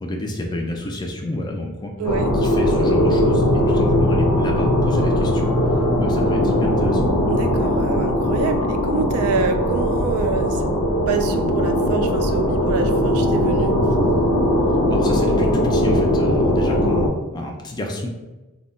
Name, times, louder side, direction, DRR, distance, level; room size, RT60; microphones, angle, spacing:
voice 1, 0.0-1.9 2.4-5.5 6.0-7.1 14.9-18.1, left 1 dB, 20° left, 1 dB, 0.3 m, -29 dB
sound 1, 2.0-17.1, left 1 dB, 85° left, 0.5 m, -19 dB
voice 2, 2.0-2.3 7.3-10.7 11.1-13.8, right 5 dB, 80° right, 7 dB, 0.3 m, -26 dB
2.2 x 2.0 x 3.7 m, 1.1 s
head